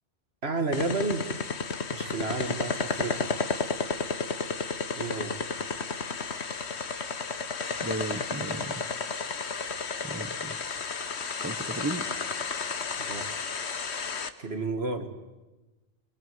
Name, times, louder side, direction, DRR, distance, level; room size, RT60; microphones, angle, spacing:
voice 1, 0.4-1.3 1.9-3.3 5.0-5.4 13.0-13.3 14.4-15.1, right 3 dB, 70° right, 7 dB, 2.4 m, -31 dB
sound 1, 0.7-14.3, left 5 dB, 85° left, 1.6 m, -32 dB
voice 2, 7.8-8.8 10.0-10.6 11.4-12.1, right 2 dB, 15° right, 12 dB, 1.2 m, -35 dB
25.0 x 23.0 x 9.5 m, 1.1 s
omnidirectional pair, 1.1 m